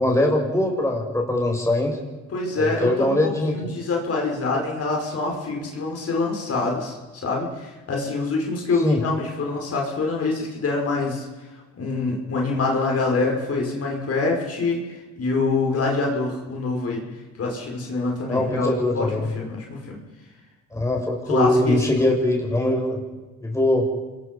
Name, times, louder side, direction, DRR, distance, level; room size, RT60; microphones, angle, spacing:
voice 1, 0.0-2.0 2.6-3.7 8.8-9.0 18.3-19.3 20.7-23.0 23.4-23.9, left 1 dB, 10° left, 0 dB, 7.1 m, -22 dB
voice 2, 2.3-11.3 11.8-17.0 17.3-20.0 21.3-22.1, left 3 dB, 50° left, 0 dB, 5.8 m, -25 dB
28.0 x 21.5 x 5.6 m, 1.2 s
cardioid pair, 90°, 30 cm